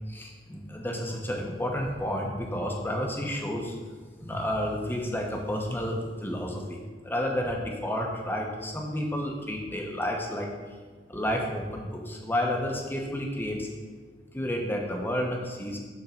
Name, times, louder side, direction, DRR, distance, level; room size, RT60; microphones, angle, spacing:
voice 1, 0.1-3.8 4.2-10.5 11.1-13.7 14.3-15.8, equal, 10° left, 0 dB, 0.9 m, -31 dB
6.7 x 3.6 x 5.7 m, 1.5 s
head